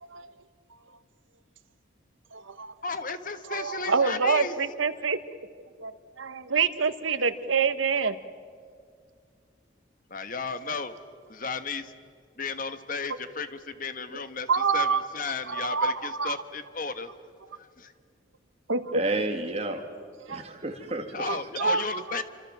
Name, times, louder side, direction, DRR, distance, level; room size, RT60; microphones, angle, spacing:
voice 1, 0.0-0.4 2.3-2.7 3.5-5.2 5.8-8.2 14.5-15.1 15.5-16.4 18.7-19.0 20.3-20.4 21.2-22.2, right 5 dB, 90° right, 12 dB, 1.3 m, -27 dB
voice 2, 2.8-4.5 10.1-10.9 11.3-11.9 12.4-14.5 14.7-17.1 17.6-17.9 21.1-22.2, left 4 dB, 45° left, 10 dB, 1.4 m, -34 dB
voice 3, 18.9-19.9 20.3-21.4, right 2 dB, 35° right, 3 dB, 2.8 m, -31 dB
27.5 x 26.0 x 7.5 m, 2.2 s
head